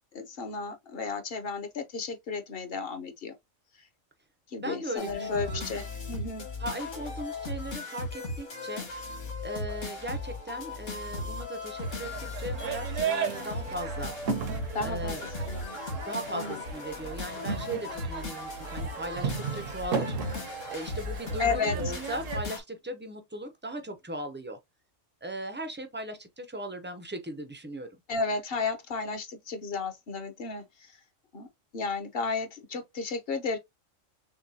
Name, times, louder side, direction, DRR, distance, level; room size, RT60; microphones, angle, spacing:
voice 1, 0.1-3.3 3.8-3.9 4.5-6.5 14.7-15.8 16.3-16.6 21.4-21.8 28.1-31.0 31.3-31.5 31.7-33.6, left 4 dB, 50° left, 0.9 m, -33 dB
voice 2, 4.6-5.7 6.6-8.9 9.4-14.1 14.8-15.3 16.1-24.6 25.2-27.9, right 1 dB, 15° right, 0.3 m, -38 dB
sound 1, 5.0-22.6, left 2 dB, 65° left, 1.9 m, -37 dB
sound 2, 11.8-22.4, right 6 dB, 75° right, 1.2 m, -36 dB
6.4 x 2.2 x 2.7 m
omnidirectional pair, 1.4 m